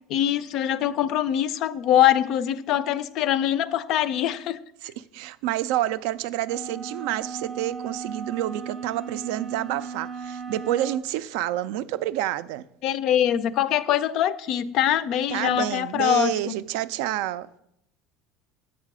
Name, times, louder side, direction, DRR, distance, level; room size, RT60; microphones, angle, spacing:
voice 1, 0.1-4.6 12.8-16.5, left 11 dB, 50° left, 0.4 m, -23 dB
voice 2, 4.8-12.6 15.3-17.5, right 13 dB, 70° right, 0.3 m, -28 dB
sound 1, 6.4-11.1, right 5 dB, 10° right, 0.5 m, -36 dB
7.4 x 4.8 x 5.9 m
cardioid pair, 150°, 0 cm